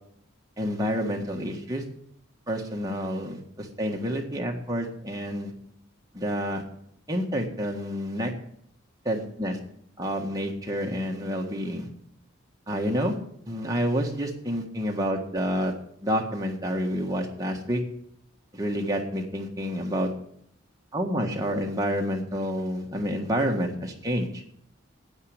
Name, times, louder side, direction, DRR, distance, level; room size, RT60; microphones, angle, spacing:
voice 1, 0.6-1.8 2.5-5.5 6.1-6.6 7.1-8.3 9.0-9.6 10.0-11.9 12.7-13.1 13.5-15.7 16.0-17.8 18.5-20.1 20.9-24.3, equal, 15° right, 0 dB, 1.7 m, -28 dB
9.7 x 8.7 x 8.7 m, 0.69 s
head